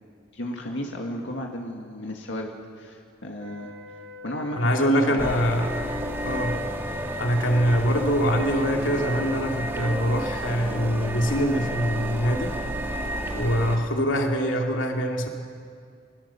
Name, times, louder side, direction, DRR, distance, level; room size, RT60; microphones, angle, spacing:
voice 1, 0.3-3.7 4.2-5.4, left 1 dB, 70° left, 1 dB, 2.1 m, -34 dB
sound 1, 3.4-7.3, left 2 dB, 90° right, 5.4 m, -43 dB
voice 2, 4.6-5.8 6.2-6.7 7.2-12.6 13.3-15.3, equal, 85° left, 2 dB, 2.4 m, -24 dB
sound 2, 5.2-13.8, equal, 10° right, 2.2 m, -31 dB
24.5 x 21.0 x 7.2 m, 2.2 s
head